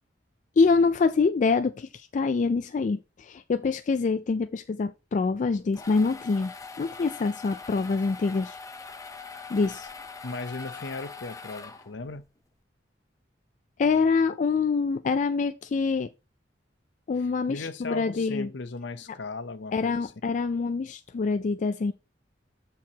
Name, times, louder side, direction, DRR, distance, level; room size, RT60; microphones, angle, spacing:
voice 1, 0.6-6.5 6.8-8.6 9.5-9.9 13.8-16.1 17.1-18.5 19.7-21.9, left 4 dB, 40° left, 0.3 m, -25 dB
sound 1, 5.5-12.2, left 4 dB, 20° left, 0.7 m, -42 dB
voice 2, 10.2-12.2 17.2-20.1, left 3 dB, 70° left, 0.7 m, -37 dB
13.0 x 4.6 x 2.8 m
head